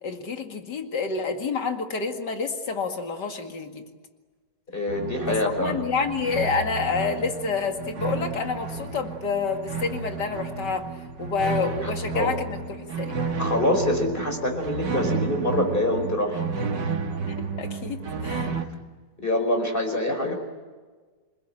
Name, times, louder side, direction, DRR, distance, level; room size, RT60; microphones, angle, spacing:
voice 1, 0.0-3.9 5.3-13.2 17.3-18.5, left 5 dB, 70° left, 5 dB, 2.8 m, -29 dB
voice 2, 4.7-5.8 11.8-12.3 13.4-16.4 18.5-18.7 19.2-20.3, left 1 dB, 30° left, 4 dB, 5.2 m, -25 dB
sound 1, 4.9-18.7, right 4 dB, 75° right, 2.3 m, -32 dB
28.0 x 21.0 x 9.1 m, 1.4 s
omnidirectional pair, 1.9 m